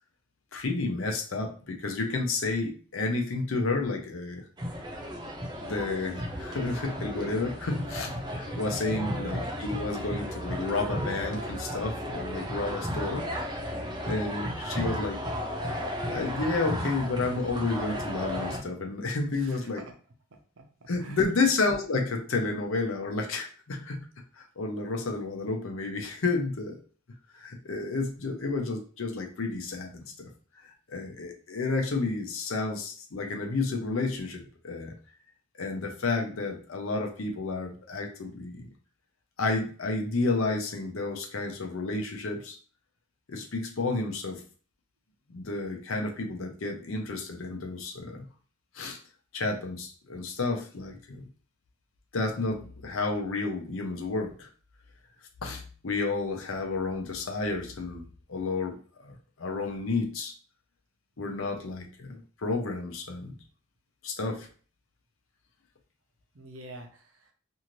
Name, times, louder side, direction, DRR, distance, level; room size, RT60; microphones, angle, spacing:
voice 1, 0.5-4.4 5.6-13.3 13.5-13.6 14.0-15.2 15.7-19.8 20.9-24.1 24.4-26.8 27.3-30.3 30.6-35.0 35.6-38.7 39.4-42.6 43.3-44.4 45.3-48.2 48.7-49.0 49.3-51.2 52.1-54.5 55.4-58.8 59.0-60.3 61.2-63.4 64.0-64.5, left 3 dB, 70° left, 3 dB, 0.6 m, -31 dB
sound 1, 4.6-18.6, equal, 20° right, 0.5 m, -34 dB
voice 2, 19.3-19.9 20.6-21.2 66.3-67.3, right 2 dB, 65° right, 4 dB, 0.6 m, -47 dB
2.7 x 2.5 x 3.0 m, 0.41 s
head